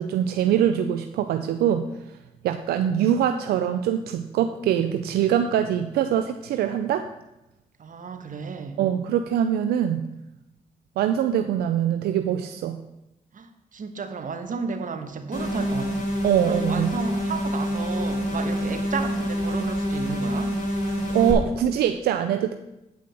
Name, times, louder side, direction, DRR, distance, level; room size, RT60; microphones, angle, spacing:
voice 1, 0.0-1.9 2.4-7.1 8.8-10.0 11.0-12.8 16.2-16.9 21.1-22.5, right 10 dB, 85° right, 8 dB, 0.5 m, -23 dB
voice 2, 7.8-8.8 13.3-16.1 16.4-20.5, right 5 dB, 60° right, 7 dB, 1.3 m, -33 dB
sound 1, 15.3-21.3, equal, 55° left, 3.4 m, -27 dB
8.6 x 5.1 x 7.6 m, 0.93 s
supercardioid pair, 50°, 16 cm